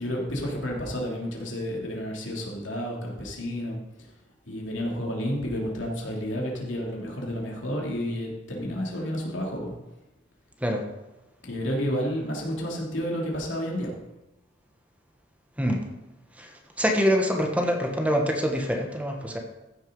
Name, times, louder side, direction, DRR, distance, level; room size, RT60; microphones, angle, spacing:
voice 1, 0.0-4.1 4.4-9.7 11.4-13.9, equal, 75° left, -2 dB, 3.2 m, -31 dB
voice 2, 16.8-19.4, equal, 10° right, 3 dB, 1.2 m, -25 dB
14.5 x 6.5 x 5.4 m, 1.0 s
head